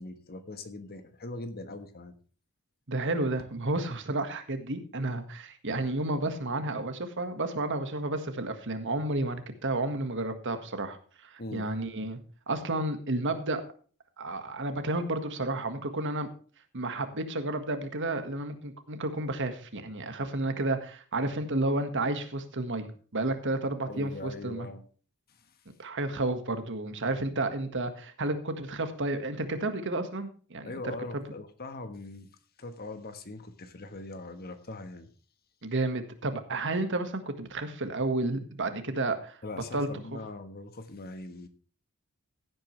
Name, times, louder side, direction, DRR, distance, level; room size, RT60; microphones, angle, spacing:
voice 1, 0.0-2.2 11.4-11.7 23.9-24.8 25.3-25.6 30.6-32.3 32.6-35.1 39.4-41.5, left 2 dB, 45° left, 9 dB, 1.4 m, -41 dB
voice 2, 2.9-11.0 11.2-12.2 12.5-13.6 14.2-16.3 16.7-24.7 25.8-30.9 35.6-39.4 39.7-40.2, right 2 dB, 55° right, 8 dB, 1.7 m, -31 dB
16.0 x 8.9 x 3.3 m, 0.40 s
head